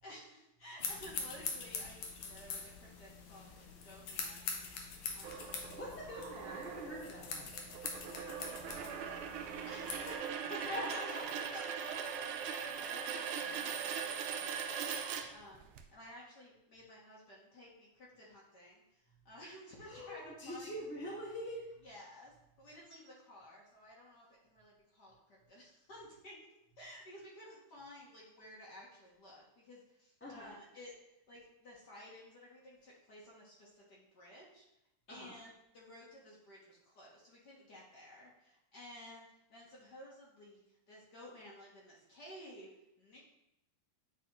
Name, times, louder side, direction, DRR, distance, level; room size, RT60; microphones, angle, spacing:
voice 1, 0.0-4.8 5.1-5.7 8.0-10.1 10.5-11.2 11.5-20.8 21.8-26.5 26.8-31.0 31.3-34.7 35.1-43.2, equal, 55° left, -5 dB, 1.8 m, -54 dB
sound 1, 0.8-10.1, left 5 dB, 85° left, 1.8 m, -44 dB
sound 2, 5.2-15.8, right 7 dB, 90° right, 1.5 m, -41 dB
voice 2, 5.7-7.5 10.1-11.4 19.9-21.7 30.2-30.5 35.1-35.3, equal, 5° left, -6 dB, 1.5 m, -44 dB
9.5 x 4.0 x 2.9 m, 0.84 s
omnidirectional pair, 2.3 m